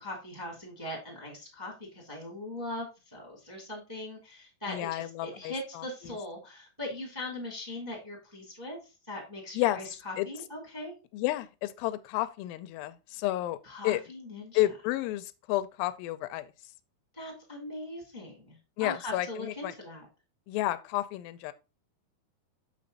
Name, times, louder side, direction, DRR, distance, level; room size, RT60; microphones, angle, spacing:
voice 1, 0.0-10.9 13.6-14.6 17.1-20.1, left 1 dB, 5° right, 1.8 m, -40 dB
voice 2, 4.7-6.2 9.5-9.8 10.2-10.3 11.1-13.6 13.8-14.0 14.5-16.5 18.8-19.7 20.5-21.5, left 15 dB, 80° left, 2.3 m, -31 dB
7.0 x 5.2 x 4.0 m
omnidirectional pair, 4.4 m